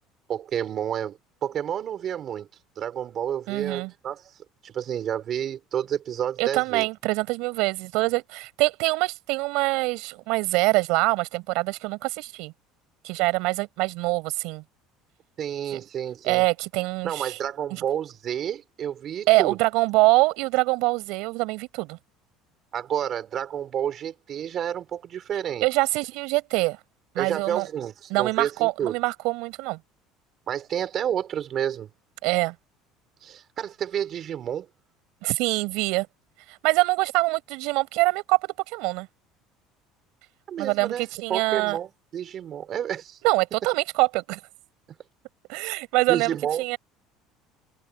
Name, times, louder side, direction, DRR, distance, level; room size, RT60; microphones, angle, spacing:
voice 1, 0.3-2.5 2.8-4.2 4.6-6.9 15.4-16.4 17.0-19.6 22.7-25.7 27.2-29.0 30.5-31.9 33.2-34.7 40.5-43.2 46.1-46.6, right 9 dB, 30° right, 4.2 m, -30 dB
voice 2, 3.5-3.9 6.4-12.5 13.0-14.6 16.2-17.4 17.7-17.8 19.3-22.0 25.6-26.8 27.2-27.7 28.1-29.8 32.2-32.5 35.2-36.1 36.5-39.1 40.6-41.8 43.2-44.4 45.5-46.8, right 24 dB, 65° right, 5.1 m, -24 dB
cardioid pair, 180°, 0 cm